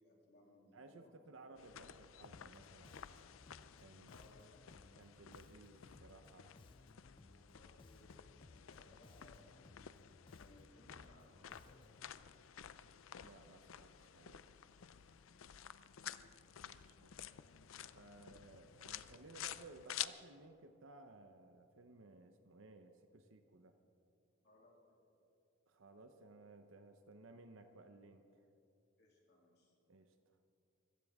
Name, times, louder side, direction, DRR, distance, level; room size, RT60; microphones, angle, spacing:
voice 1, 0.0-1.1 4.1-4.7 6.6-6.7 7.2-9.6 10.3-11.8 16.0-16.7 24.4-25.0 29.0-29.7, left 1 dB, 55° left, -2 dB, 2.9 m, -66 dB
voice 2, 0.7-3.0 3.8-4.2 5.0-6.5 13.2-14.4 16.2-16.3 16.6-17.2 17.9-23.8 25.7-28.5 29.9-30.1, right 2 dB, 80° right, 7 dB, 0.8 m, -59 dB
sound 1, 1.6-20.1, left 11 dB, 85° left, 0.5 m, -52 dB
Bass guitar, 2.2-12.1, left 2 dB, 25° left, 0.4 m, -63 dB
24.5 x 15.5 x 3.6 m, 2.8 s
head